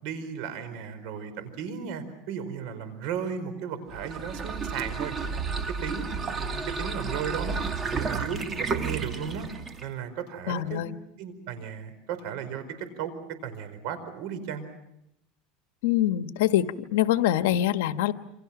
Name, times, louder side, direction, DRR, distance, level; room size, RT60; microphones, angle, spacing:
voice 1, 0.0-5.1 5.7-9.5 9.8-10.8 11.2-13.1 13.4-14.6, right 7 dB, 65° right, 11 dB, 4.9 m, -35 dB
sound 1, 3.9-9.9, right 5 dB, 25° right, 2.2 m, -32 dB
voice 2, 10.5-10.9 15.8-16.6 16.9-18.1, left 12 dB, 85° left, 10 dB, 1.2 m, -24 dB
28.5 x 26.5 x 6.0 m, 0.83 s
supercardioid pair, 135°, 0 cm